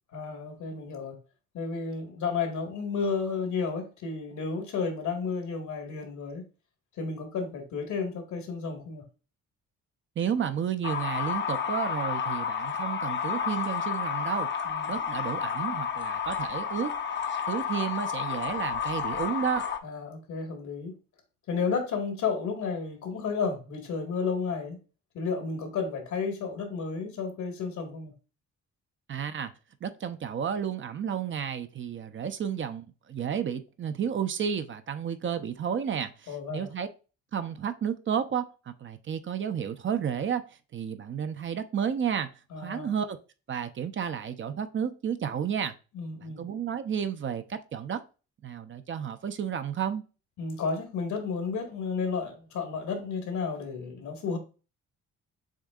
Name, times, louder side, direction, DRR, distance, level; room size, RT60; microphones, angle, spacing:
voice 1, 0.1-1.2 1.5-6.4 7.0-9.0 14.6-14.9 19.8-20.9 21.5-24.8 25.1-28.1 36.3-36.7 42.5-42.9 45.9-46.5 50.4-54.4, left 5 dB, 70° left, 1.6 m, -32 dB
voice 2, 10.2-14.5 14.9-16.9 17.5-19.6 29.1-29.5 29.8-36.9 37.3-40.4 40.7-42.3 42.6-43.2 43.5-45.7 46.4-48.0 48.4-50.0, right 8 dB, 40° right, 0.5 m, -32 dB
sound 1, 10.8-19.8, left 7 dB, 40° left, 0.6 m, -31 dB
7.2 x 2.7 x 2.4 m
cardioid pair, 90°, 30 cm